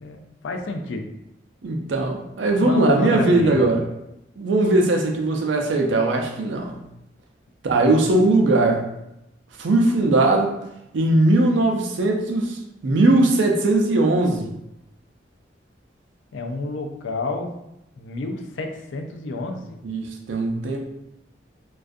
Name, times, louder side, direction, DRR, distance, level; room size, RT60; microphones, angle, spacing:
voice 1, 0.4-1.1 2.6-3.8 16.3-17.5 18.0-19.8, left 2 dB, 90° left, 4 dB, 0.4 m, -29 dB
voice 2, 1.6-3.8 4.4-6.8 7.6-8.8 9.6-10.6 10.9-14.5 19.8-20.8, right 2 dB, 80° right, 2 dB, 0.4 m, -19 dB
2.3 x 2.3 x 2.5 m, 0.84 s
head